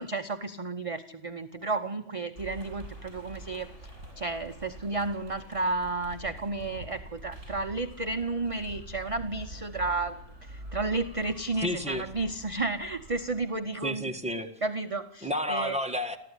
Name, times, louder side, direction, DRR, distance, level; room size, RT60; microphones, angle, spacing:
voice 1, 0.0-3.7 4.2-14.1 14.6-15.7, right 3 dB, 30° right, 7 dB, 0.9 m, -32 dB
sound 1, 2.3-13.5, right 1 dB, 60° right, 8.5 m, -45 dB
voice 2, 11.6-12.1 13.8-14.5 15.2-16.2, left 1 dB, 5° right, 3 dB, 1.7 m, -31 dB
29.5 x 13.0 x 9.9 m, 0.79 s
omnidirectional pair, 1.3 m